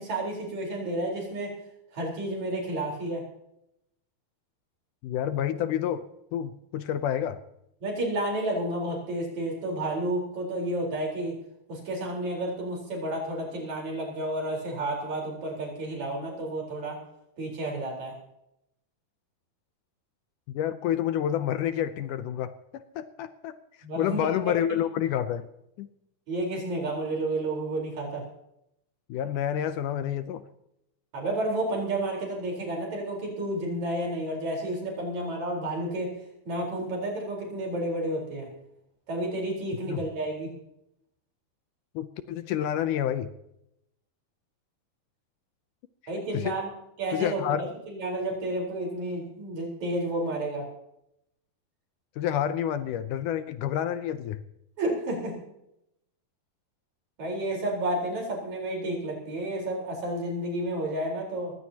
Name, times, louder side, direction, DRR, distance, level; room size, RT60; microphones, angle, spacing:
voice 1, 0.0-1.5 1.9-3.2 7.8-11.4 11.7-17.0 17.4-18.1 23.8-24.3 26.3-28.3 31.1-36.1 36.5-38.5 39.1-40.5 46.1-46.7 47.0-50.7 54.8-55.4 57.2-61.5, right 1 dB, 50° right, 0 dB, 5.6 m, -31 dB
voice 2, 5.0-6.0 6.3-7.4 20.5-23.6 24.0-25.5 25.8-25.9 29.1-30.4 39.9-40.0 42.0-43.3 46.3-46.6 47.1-47.6 52.2-54.4, left 10 dB, 75° left, 11 dB, 2.0 m, -29 dB
21.0 x 16.5 x 2.9 m, 0.81 s
omnidirectional pair, 4.3 m